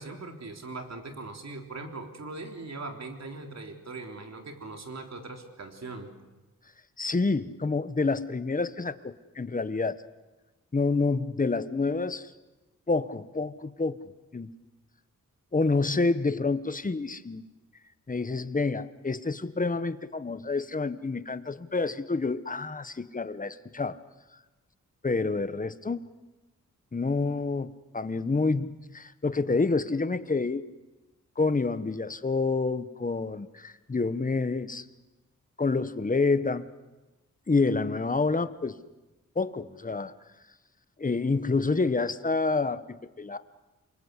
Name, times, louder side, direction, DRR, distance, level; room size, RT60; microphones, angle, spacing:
voice 1, 0.0-6.1, right 3 dB, 55° right, 4 dB, 3.7 m, -40 dB
voice 2, 7.0-10.0 10.7-12.3 12.9-14.0 14.3-14.5 15.5-17.4 18.1-24.0 25.0-26.0 26.9-30.6 31.4-34.8 35.6-36.7 37.5-38.8 39.3-40.1 41.0-43.4, left 3 dB, 25° left, 13 dB, 1.1 m, -28 dB
28.0 x 24.0 x 8.2 m, 1.1 s
wide cardioid pair, 115°, 32 cm